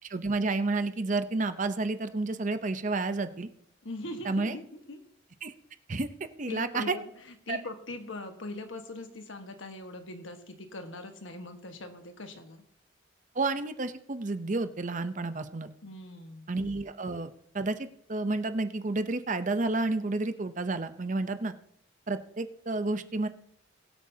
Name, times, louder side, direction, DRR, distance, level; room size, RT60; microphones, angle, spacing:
voice 1, 0.1-3.5 4.2-4.6 5.4-5.5 5.9-7.0 7.5-7.6 13.3-15.7 16.5-21.5 22.1-23.3, right 3 dB, 40° right, 10 dB, 0.7 m, -30 dB
voice 2, 3.8-5.0 6.5-12.6 15.8-16.5, left 2 dB, 85° left, 6 dB, 1.4 m, -41 dB
21.5 x 8.4 x 2.8 m, 0.72 s
head